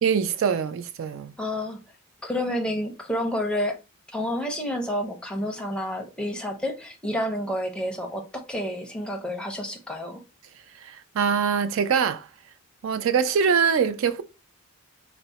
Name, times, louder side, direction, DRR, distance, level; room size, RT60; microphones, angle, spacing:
voice 1, 0.0-1.3 10.7-12.3 12.8-14.2, right 6 dB, 60° right, 0.3 m, -23 dB
voice 2, 1.4-1.8 2.2-3.8 4.1-10.2, left 1 dB, 5° left, 0.5 m, -29 dB
4.5 x 2.0 x 4.0 m
head